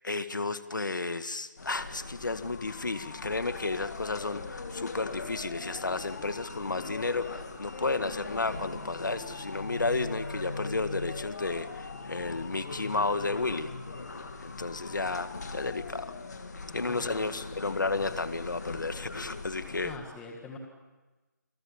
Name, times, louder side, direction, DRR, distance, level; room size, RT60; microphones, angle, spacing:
voice 1, 0.0-13.7 14.4-16.1 16.7-19.9, left 3 dB, 85° left, 11 dB, 1.8 m, -32 dB
sound 1, 1.6-20.0, left 3 dB, 65° left, 3.3 m, -41 dB
sound 2, 2.1-16.7, left 6 dB, 35° left, 1.0 m, -47 dB
voice 2, 16.9-17.6 19.8-20.6, left 3 dB, 10° left, 2 dB, 1.8 m, -44 dB
28.0 x 20.5 x 7.3 m, 1.2 s
figure-of-eight pair, 165°, 10 cm